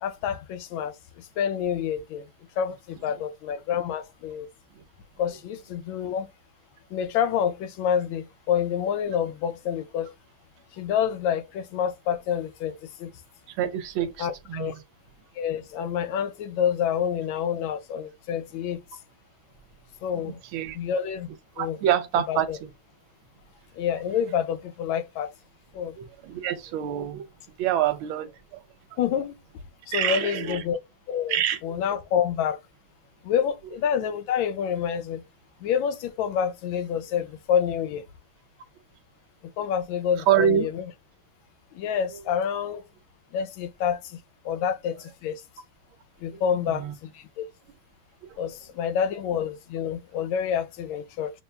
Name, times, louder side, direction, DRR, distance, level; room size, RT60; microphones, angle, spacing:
voice 1, 0.0-2.3 2.6-4.5 5.2-6.3 6.9-10.1 10.7-13.1 14.2-14.7 15.3-18.8 20.0-20.4 20.7-21.3 21.6-21.8 22.3-22.6 23.7-25.3 25.7-26.0 29.0-29.3 29.9-30.8 31.1-31.4 31.6-32.6 33.2-35.2 35.6-38.0 39.6-40.8 41.7-42.8 43.3-44.2 44.4-45.4 46.2-47.4 48.4-51.3, left 8 dB, 75° left, 1.2 m, -28 dB
voice 2, 13.5-14.7 20.2-20.8 21.6-22.5 26.0-27.3 27.6-28.6 28.9-29.0 29.9-30.6 31.3-31.6 40.3-40.7 42.1-42.2 46.3-46.4 46.7-46.9 48.3-48.4, right 10 dB, 75° right, 1.4 m, -26 dB
6.7 x 2.3 x 2.2 m
omnidirectional pair, 2.4 m